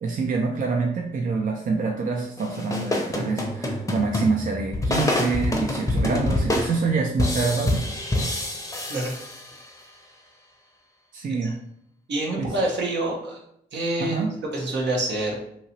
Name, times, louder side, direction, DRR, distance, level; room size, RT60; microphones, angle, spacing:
voice 1, 0.0-7.8 11.1-11.5 12.4-12.5 14.0-14.3, right 4 dB, 45° right, 2 dB, 0.5 m, -26 dB
sound 1, 2.4-9.8, left 1 dB, 15° left, 0.7 m, -26 dB
voice 2, 12.1-13.4 13.7-15.4, right 2 dB, 65° right, -1 dB, 0.9 m, -27 dB
2.9 x 2.8 x 2.8 m, 0.74 s
supercardioid pair, 50°, 19 cm